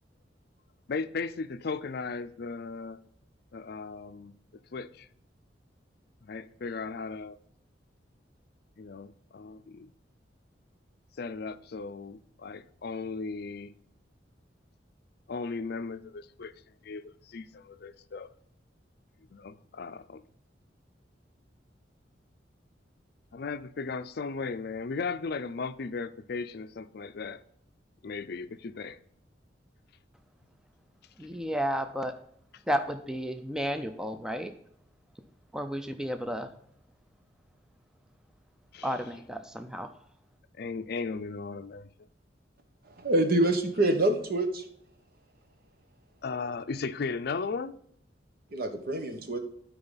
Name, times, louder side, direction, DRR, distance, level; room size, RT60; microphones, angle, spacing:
voice 1, 0.9-3.0 3.5-4.3 4.7-5.1 6.2-7.4 8.8-9.9 11.2-13.7 15.3-16.5 16.8-18.3 19.3-20.2 23.3-27.4 28.0-29.0 32.5-32.6 38.7-38.9 40.5-41.9 46.2-47.7, left 4 dB, 60° left, 0.5 m, -36 dB
voice 2, 31.2-32.2 32.7-34.5 35.5-36.5 38.8-39.9, equal, 5° right, 0.5 m, -32 dB
voice 3, 43.0-44.6 48.5-49.4, right 1 dB, 55° right, 1.3 m, -26 dB
12.5 x 4.9 x 4.0 m
head